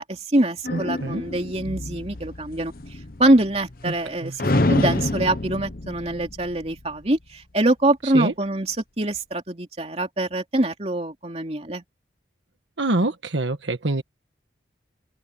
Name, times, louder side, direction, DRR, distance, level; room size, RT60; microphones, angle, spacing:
voice 1, 0.0-2.7 3.2-4.3 4.7-11.8, right 1 dB, 35° right, 2.9 m, -24 dB
sound 1, 0.6-4.1 4.4-7.1, left 2 dB, 50° left, 1.1 m, -28 dB
voice 2, 0.7-1.2 3.8-3.9 4.2-4.4 8.0-8.3 12.8-14.0, right 2 dB, 90° right, 1.5 m, -25 dB
open air
head